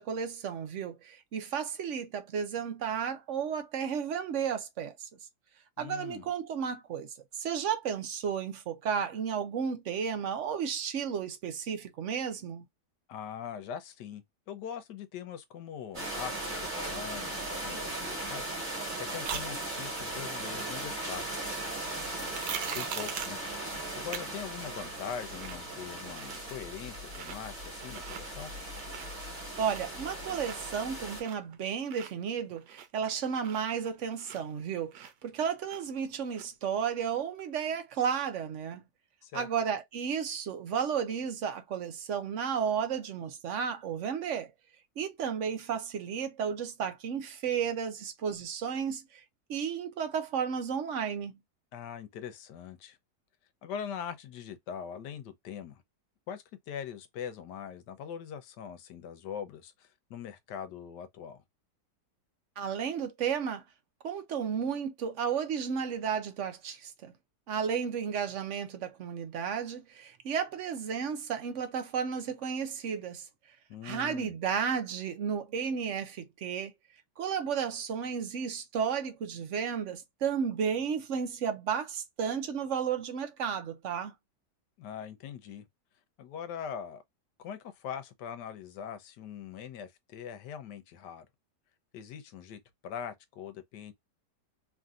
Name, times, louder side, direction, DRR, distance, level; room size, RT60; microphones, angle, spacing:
voice 1, 0.0-5.1 5.8-12.7 29.6-38.8 39.3-44.5 45.0-49.2 49.5-51.3 62.6-63.6 64.0-67.1 67.5-73.3 73.8-76.7 77.2-84.1, right 7 dB, 60° right, 0.8 m, -33 dB
voice 2, 5.8-6.3 13.1-18.4 19.0-21.2 22.7-23.4 23.9-28.5 39.2-39.5 51.7-53.0 53.6-55.8 56.3-61.4 73.7-74.3 84.8-85.7 86.2-87.0 87.4-91.3 91.9-93.9, left 8 dB, 85° left, 1.3 m, -42 dB
sound 1, 15.9-31.2, right 1 dB, 30° right, 1.4 m, -38 dB
sound 2, 19.2-19.5 22.1-23.4 24.1-24.2 24.6-24.7 25.1-25.7 26.0-26.6 27.0-27.4 27.8-28.2 28.6-29.3 29.5-31.6 31.9-34.6 34.9-36.0 36.3-36.5, right 9 dB, 85° right, 1.3 m, -41 dB
3.2 x 2.6 x 2.3 m
omnidirectional pair, 1.8 m